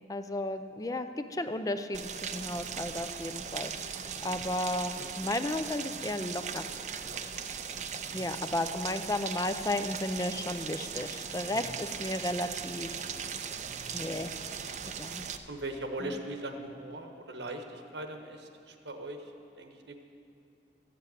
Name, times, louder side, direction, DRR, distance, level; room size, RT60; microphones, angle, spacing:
voice 1, 0.1-6.7 8.1-12.9 13.9-14.3 15.0-15.2 16.0-16.2, left 1 dB, 20° left, 9 dB, 0.4 m, -34 dB
Rain, 1.9-15.4, right 7 dB, 40° right, 0.5 m, -39 dB
voice 2, 7.6-8.3 11.5-11.8 15.5-19.3 19.6-20.0, right 1 dB, 85° right, 5 dB, 1.2 m, -41 dB
13.5 x 7.7 x 8.2 m, 2.6 s
head